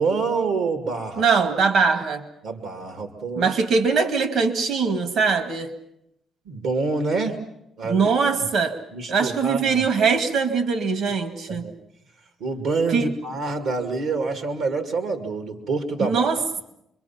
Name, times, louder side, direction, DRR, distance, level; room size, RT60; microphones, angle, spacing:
voice 1, 0.0-1.3 2.4-3.5 6.5-7.4 7.8-8.1 8.9-9.9 11.5-11.7 12.4-16.6, right 4 dB, 85° right, 5 dB, 2.2 m, -27 dB
voice 2, 1.2-2.3 3.4-5.7 7.8-8.8 9.1-11.7 12.9-13.1 16.0-16.4, right 5 dB, 70° right, 7 dB, 2.1 m, -22 dB
28.0 x 23.0 x 5.8 m, 0.82 s
cardioid pair, 90°, 0 cm